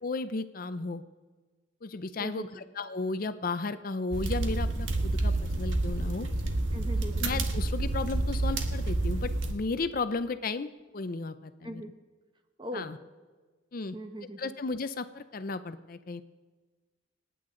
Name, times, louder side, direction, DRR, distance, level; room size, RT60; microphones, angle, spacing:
voice 1, 0.0-1.0 1.8-6.3 7.2-11.8 12.7-13.0 13.7-14.0 14.4-16.2, left 3 dB, 45° left, 12 dB, 0.5 m, -34 dB
voice 2, 2.2-2.6 6.7-7.3 11.6-11.9 12.6-12.9 13.9-14.5, equal, 25° right, 6 dB, 1.1 m, -40 dB
sound 1, 4.1-9.5, right 2 dB, 75° right, 1.5 m, -29 dB
27.5 x 9.4 x 3.8 m, 1.4 s
head